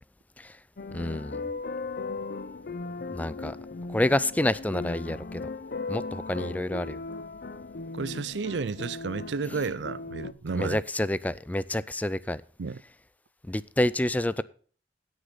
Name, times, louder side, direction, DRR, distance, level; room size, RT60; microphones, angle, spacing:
sound 1, 0.8-10.3, left 3 dB, 55° left, 0.6 m, -37 dB
voice 1, 0.9-1.4 3.1-3.6 3.9-5.4 5.9-7.0 10.5-12.4 13.5-14.4, left 1 dB, 10° left, 0.4 m, -28 dB
voice 2, 7.9-10.8 12.6-12.8, right 4 dB, 80° right, 0.5 m, -32 dB
17.0 x 6.4 x 4.0 m
head